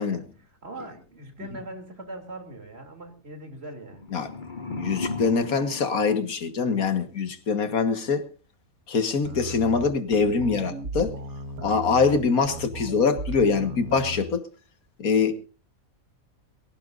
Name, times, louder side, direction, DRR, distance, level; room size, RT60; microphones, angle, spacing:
voice 1, 0.0-4.0, right 2 dB, 45° right, 3.4 m, -41 dB
sound 1, 3.8-6.9, left 3 dB, 35° left, 1.6 m, -36 dB
voice 2, 4.8-8.3 8.9-11.1 11.6-14.4 15.0-15.3, left 5 dB, 85° left, 2.1 m, -24 dB
sound 2, 9.2-14.3, right 1 dB, 90° right, 2.0 m, -36 dB
23.0 x 17.5 x 2.6 m
omnidirectional pair, 1.5 m